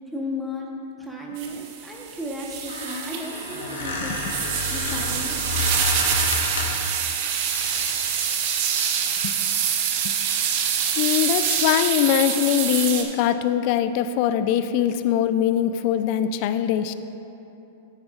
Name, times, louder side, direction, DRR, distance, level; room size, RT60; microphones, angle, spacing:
voice 1, 0.1-0.7 1.0-4.2 4.7-5.6, left 1 dB, 5° right, -3 dB, 1.1 m, -34 dB
sound 1, 1.4-13.0, right 8 dB, 55° right, 0.9 m, -26 dB
Squeak, 2.5-6.9 7.5-8.0, left 2 dB, 80° left, 1.3 m, -30 dB
voice 2, 11.0-16.9, left 10 dB, 50° left, 11 dB, 0.4 m, -22 dB
9.5 x 8.8 x 2.5 m, 2.9 s
hypercardioid pair, 110°, 0 cm